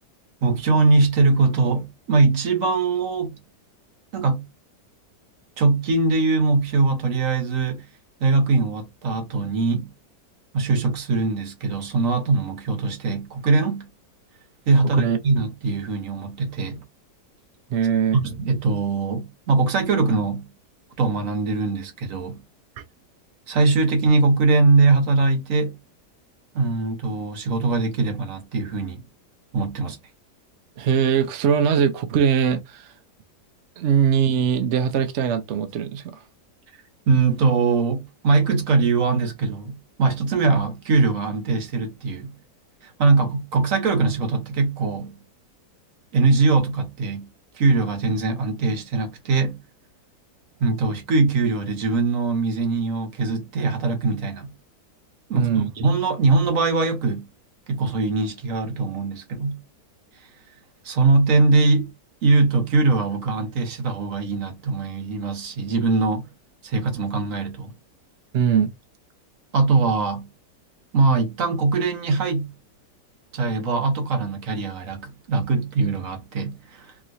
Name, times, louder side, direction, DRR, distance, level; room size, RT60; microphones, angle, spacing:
voice 1, 0.4-3.4 4.1-4.5 5.6-7.9 8.2-9.9 10.5-13.9 14.7-16.8 18.1-20.5 21.0-22.4 23.5-25.8 26.5-29.0 29.5-30.0 37.1-42.3 42.8-45.2 46.1-47.3 47.5-49.6 50.6-54.5 55.3-57.3 57.7-59.6 60.8-61.9 62.2-66.3 66.6-67.7 69.5-70.3 70.9-72.5 73.3-76.9, right 3 dB, 55° right, 1.2 m, -21 dB
voice 2, 17.7-18.2 30.8-32.9 33.8-36.2 55.3-55.7 68.3-68.7, right 7 dB, 75° right, 0.6 m, -21 dB
3.1 x 2.9 x 2.5 m
omnidirectional pair, 1.8 m